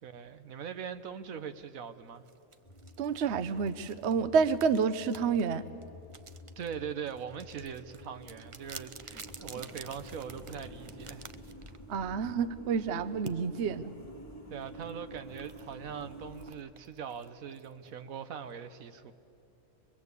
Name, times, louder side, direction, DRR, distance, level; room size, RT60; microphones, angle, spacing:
voice 1, 0.0-2.2 6.6-11.3 14.5-19.1, right 7 dB, 85° right, 10 dB, 1.4 m, -41 dB
sound 1, 2.2-12.1 13.3-13.4 14.7-18.5, right 4 dB, 40° right, 0.4 m, -50 dB
sound 2, 2.6-16.5, equal, 10° left, 1.8 m, -49 dB
voice 2, 3.0-5.7 11.9-13.9, right 6 dB, 60° right, 13 dB, 1.0 m, -29 dB
24.0 x 21.5 x 8.2 m, 2.8 s
omnidirectional pair, 1.4 m